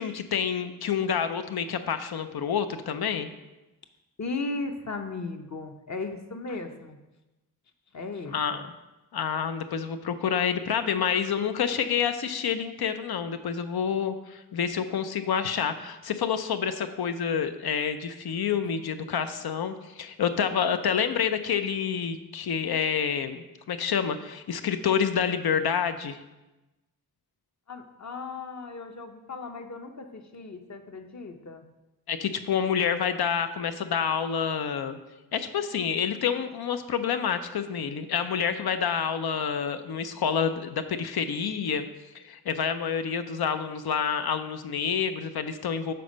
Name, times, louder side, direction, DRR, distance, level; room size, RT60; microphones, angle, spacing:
voice 1, 0.0-3.3 8.3-8.6 9.1-26.2 32.1-35.0 35.3-41.9 42.1-45.9, left 7 dB, 90° left, 9 dB, 0.5 m, -28 dB
voice 2, 4.2-7.0 7.9-8.6 27.7-31.6, left 3 dB, 50° left, 5 dB, 0.7 m, -36 dB
6.9 x 4.3 x 5.1 m, 1.1 s
wide cardioid pair, 75°, 36 cm